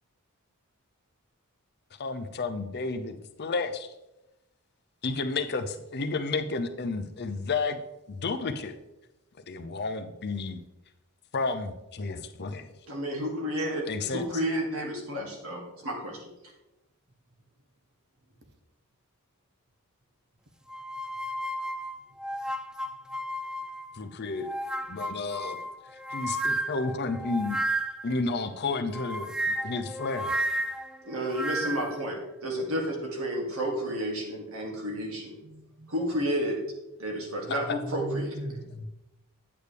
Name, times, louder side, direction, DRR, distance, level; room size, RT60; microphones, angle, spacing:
voice 1, 2.0-3.9 5.0-7.8 8.1-8.8 9.5-10.6 11.3-12.7 13.9-14.2 23.9-24.5 24.9-25.6 26.1-27.6 28.0-30.3 37.7-37.8, left 3 dB, 50° left, 9 dB, 0.7 m, -31 dB
voice 2, 12.9-13.8 14.1-16.3 31.0-35.4 35.9-36.6 37.0-38.4, equal, 70° right, 0 dB, 2.4 m, -31 dB
sound 1, 20.7-24.0 24.4-28.1 28.9-32.0, right 1 dB, 5° right, 0.4 m, -33 dB
voice 3, 35.4-35.9 37.6-38.8, right 1 dB, 50° right, 6 dB, 1.2 m, -38 dB
9.5 x 8.7 x 3.4 m, 0.95 s
head